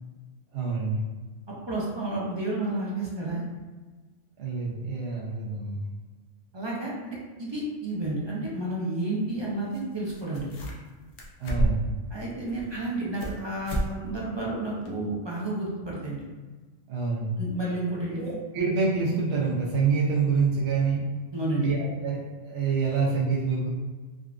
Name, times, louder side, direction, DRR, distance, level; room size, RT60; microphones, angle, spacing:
voice 1, 0.5-1.0 4.4-5.8 11.4-11.9 16.9-17.4 18.1-21.0 21.6-23.7, right 4 dB, 80° right, -4 dB, 0.9 m, -27 dB
voice 2, 1.7-3.4 6.5-10.6 12.1-16.2 17.4-18.3 21.3-21.7, right 2 dB, 35° right, -5 dB, 0.4 m, -31 dB
sound 1, 9.7-9.8 10.1-10.9 11.2-12.0 12.5-13.4 13.7-13.9 14.2-14.3 14.9-15.0, right 1 dB, 90° left, 1.0 m, -29 dB
3.7 x 2.3 x 2.3 m, 1.3 s
omnidirectional pair, 1.2 m